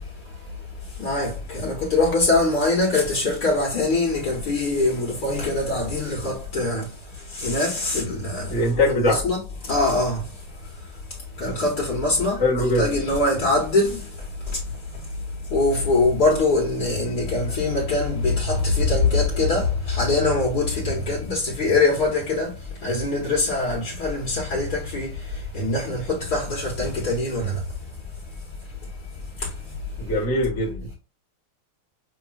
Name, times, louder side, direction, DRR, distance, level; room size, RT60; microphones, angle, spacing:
voice 1, 0.9-10.4 11.4-15.1 15.5-27.6 29.4-29.8, left 2 dB, 55° left, 1.5 m, -23 dB
voice 2, 8.5-9.2 12.4-12.9 30.0-30.9, left 1 dB, 15° left, 0.8 m, -21 dB
6.2 x 2.2 x 2.2 m
omnidirectional pair, 2.2 m